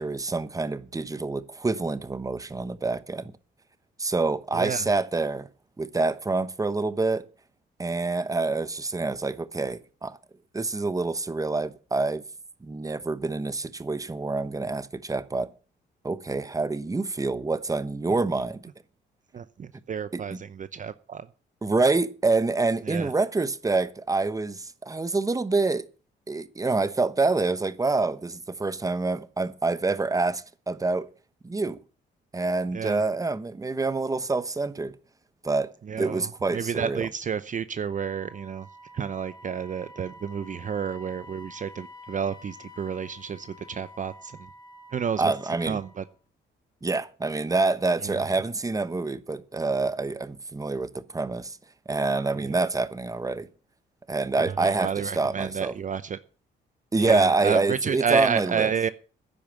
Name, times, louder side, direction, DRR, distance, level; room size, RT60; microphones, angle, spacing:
voice 1, 0.0-3.3 4.0-5.5 5.8-7.2 7.8-10.2 10.5-12.2 12.6-15.5 16.0-18.7 20.1-20.4 21.6-25.9 26.3-31.1 31.4-31.8 32.3-34.9 35.4-35.7 36.0-37.1 45.2-45.8 46.8-51.6 51.9-53.5 54.1-55.8 56.9-58.7, right 3 dB, 15° right, 1.0 m, -26 dB
voice 2, 4.5-4.8 19.3-21.3 22.9-23.1 32.7-33.0 35.9-36.3 36.5-38.7 38.9-44.3 44.9-45.3 45.7-46.0 48.1-48.2 52.4-52.6 54.6-56.2 57.0-58.9, right 7 dB, 40° right, 0.7 m, -30 dB
Wind instrument woodwind instrument, 37.8-46.1, left 1 dB, 20° left, 3.4 m, -48 dB
10.5 x 9.1 x 7.1 m
cardioid pair, 90°, 20 cm